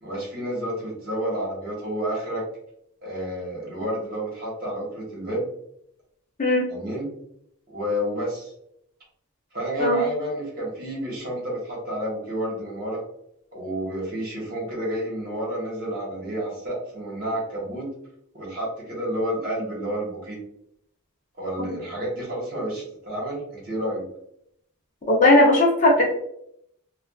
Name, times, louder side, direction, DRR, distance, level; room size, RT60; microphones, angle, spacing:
voice 1, 0.0-2.4 3.0-5.5 6.7-7.1 7.7-8.5 9.5-13.0 13.5-17.9 18.3-20.4 21.4-24.0, right 1 dB, 45° right, -5 dB, 1.2 m, -30 dB
voice 2, 25.1-26.0, left 2 dB, 35° left, -2 dB, 0.6 m, -17 dB
3.3 x 2.3 x 2.3 m, 0.74 s
head